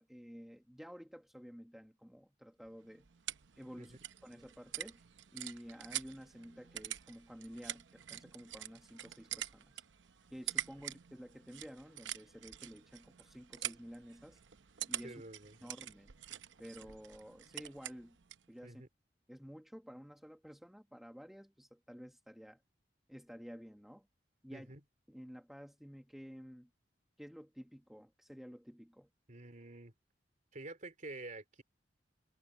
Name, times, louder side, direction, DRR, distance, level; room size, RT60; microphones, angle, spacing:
voice 1, 0.0-3.1 3.6-4.0 4.2-5.0 5.3-9.8 10.3-14.4 14.9-15.2 15.6-16.1 16.6-18.2 18.5-18.8 19.3-22.6 23.1-24.1 24.4-24.7 25.1-26.7 27.2-29.1, equal, ahead, 1.3 m, -52 dB
sound 1, 2.6-18.5, right 12 dB, 85° right, 0.7 m, -46 dB
voice 2, 15.0-15.6 18.6-18.9 24.5-24.8 29.3-29.9 30.5-31.6, right 2 dB, 45° right, 3.2 m, -48 dB
head